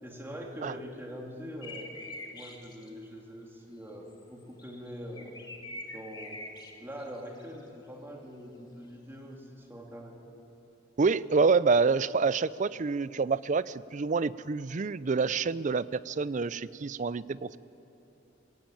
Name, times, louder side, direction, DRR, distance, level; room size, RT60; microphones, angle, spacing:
voice 1, 0.0-1.9 2.3-5.3 5.9-6.4 6.8-10.1, equal, 15° right, -1 dB, 2.9 m, -43 dB
sound 1, 1.6-2.9 4.1-4.2 4.6-6.7 7.0-7.6, left 2 dB, 25° left, 2.1 m, -44 dB
voice 2, 11.0-17.6, right 4 dB, 40° right, 18 dB, 0.4 m, -27 dB
22.5 x 16.5 x 9.0 m, 2.9 s
head